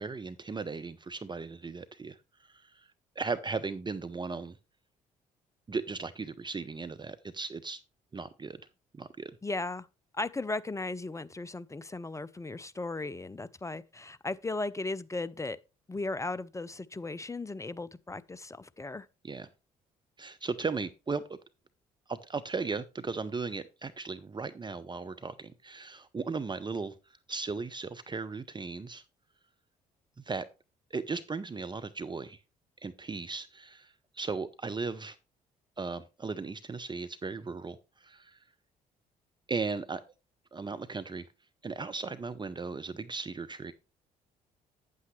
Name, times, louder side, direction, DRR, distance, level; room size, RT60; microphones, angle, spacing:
voice 1, 0.0-2.2 2.4-2.9 3.2-4.6 5.7-7.8 8.1-8.6 8.9-9.3 19.2-19.5 20.2-21.2 22.1-26.9 27.3-29.0 30.2-30.5 30.9-32.4 32.8-35.2 35.8-38.4 39.5-40.0 40.5-41.3 41.6-43.7, right 4 dB, 25° right, 0.7 m, -36 dB
voice 2, 9.4-9.9 10.1-15.6 15.9-19.1, left 2 dB, 15° left, 0.6 m, -36 dB
9.2 x 8.5 x 3.2 m
hypercardioid pair, 50°, 19 cm